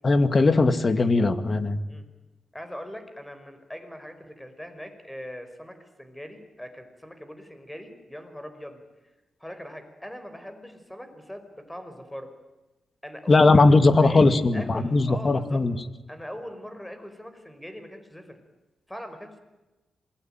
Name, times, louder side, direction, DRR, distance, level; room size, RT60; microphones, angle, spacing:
voice 1, 0.0-1.8 13.3-15.8, left 3 dB, 35° left, 10 dB, 2.3 m, -19 dB
voice 2, 2.5-8.8 9.4-12.3 13.0-15.6 16.1-18.4 18.9-19.4, equal, 5° left, 8 dB, 5.5 m, -41 dB
27.0 x 22.0 x 9.2 m, 1.1 s
cardioid pair, 95°, 0 cm